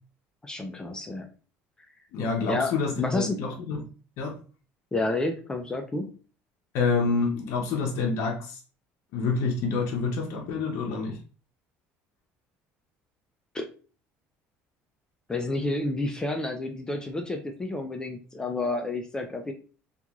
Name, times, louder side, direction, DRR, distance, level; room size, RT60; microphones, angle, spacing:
voice 1, 0.4-1.3 2.5-3.4 4.9-6.1 13.5-13.6 15.3-19.5, left 2 dB, 15° left, 0.4 m, -30 dB
voice 2, 2.1-3.9 4.2-4.4 6.7-8.6 9.1-11.2, left 4 dB, 65° left, 0.6 m, -27 dB
2.9 x 2.4 x 2.3 m
cardioid pair, 135°, 5 cm